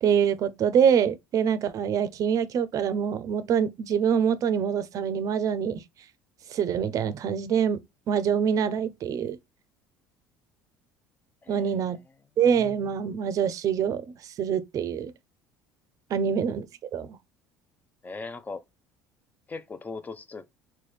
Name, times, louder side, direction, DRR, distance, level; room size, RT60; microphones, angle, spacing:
voice 1, 0.0-5.8 6.5-7.8 8.1-9.4 11.5-12.0 12.4-14.0 14.4-15.1 16.1-16.6 16.9-17.2, right 7 dB, 50° right, 0.6 m, -25 dB
voice 2, 11.4-11.9 18.0-18.6 19.5-20.4, left 4 dB, 20° left, 0.5 m, -39 dB
4.0 x 2.2 x 3.2 m
supercardioid pair, 90°, 7 cm